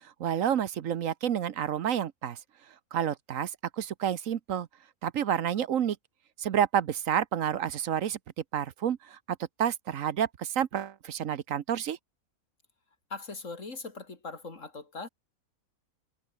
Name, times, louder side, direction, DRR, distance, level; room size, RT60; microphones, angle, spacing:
voice 1, 0.2-2.4 2.9-3.5 3.8-4.7 5.0-6.0 6.4-8.2 8.5-9.2 9.6-12.0, right 9 dB, 70° right, 1.2 m, -29 dB
voice 2, 13.1-15.1, left 3 dB, 60° left, 3.6 m, -40 dB
omnidirectional pair, 1.5 m